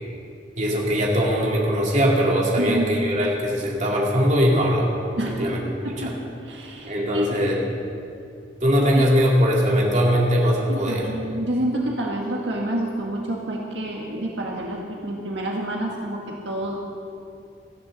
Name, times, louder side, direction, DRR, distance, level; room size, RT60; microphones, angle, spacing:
voice 1, 0.6-4.9 5.3-5.6 5.9-6.1 6.9-7.6 8.6-11.1, equal, 40° right, -3 dB, 2.7 m, -21 dB
voice 2, 2.6-3.0 5.2-5.4 5.8-6.1 6.4-7.4 8.9-9.1 10.7-16.8, right 1 dB, 80° right, -1 dB, 1.6 m, -28 dB
18.5 x 13.5 x 4.1 m, 2.5 s
head